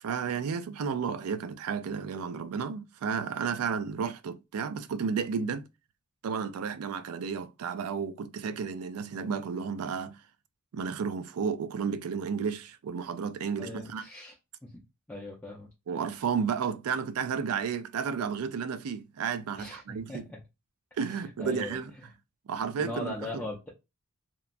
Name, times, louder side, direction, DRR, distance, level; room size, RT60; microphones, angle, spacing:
voice 1, 0.0-5.6 6.2-10.2 10.7-14.0 15.9-20.3 21.0-21.9 22.5-23.4, right 6 dB, 80° right, 0.4 m, -32 dB
voice 2, 13.6-14.3 14.6-14.8 15.1-15.7 19.5-20.4 21.1-21.8 22.8-23.7, left 2 dB, 10° left, 0.4 m, -39 dB
2.9 x 2.2 x 2.4 m
head